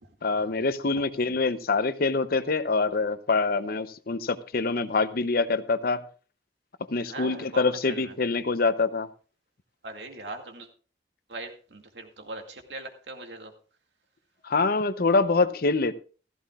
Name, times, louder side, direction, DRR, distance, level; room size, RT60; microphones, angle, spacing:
voice 1, 0.2-6.0 6.9-9.1 14.4-15.9, left 3 dB, 55° left, 13 dB, 0.7 m, -25 dB
voice 2, 7.0-8.1 9.8-10.7 11.3-13.5, right 2 dB, 70° right, 4 dB, 2.2 m, -40 dB
15.5 x 14.5 x 2.4 m, 0.38 s
head